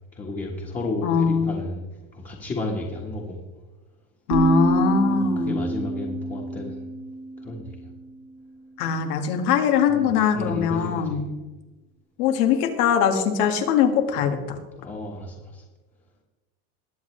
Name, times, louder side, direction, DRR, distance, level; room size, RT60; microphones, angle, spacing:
voice 1, 0.1-1.8 2.1-3.4 5.1-6.8 7.4-7.7 9.9-11.2 14.8-15.6, left 2 dB, 15° left, -2 dB, 1.4 m, -32 dB
voice 2, 1.0-1.5 4.3-5.6 8.8-11.3 12.2-14.6, left 7 dB, 85° left, 5 dB, 2.0 m, -22 dB
sound 1, 4.3-8.2, right 2 dB, 30° right, 1.3 m, -27 dB
21.0 x 8.1 x 3.3 m, 1.2 s
supercardioid pair, 150°, 44 cm